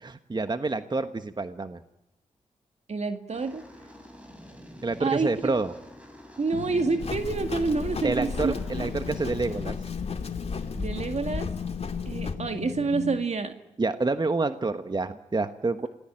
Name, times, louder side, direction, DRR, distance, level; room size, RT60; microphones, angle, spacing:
voice 1, 0.0-1.8 4.8-5.7 8.0-9.7 13.8-15.9, right 3 dB, 35° right, 10 dB, 1.3 m, -28 dB
voice 2, 2.9-3.6 5.0-5.5 6.4-8.8 10.8-11.5 12.1-13.5, right 4 dB, 55° right, 7 dB, 2.1 m, -28 dB
sound 1, 3.3-9.7, equal, 10° right, 7.3 m, -47 dB
sound 2, 6.5-13.3, left 8 dB, 85° left, 1.1 m, -37 dB
Livestock farm animals working animals, 7.0-12.3, left 4 dB, 50° left, 2.5 m, -35 dB
28.0 x 19.5 x 9.0 m, 0.92 s
cardioid pair, 60°, 13 cm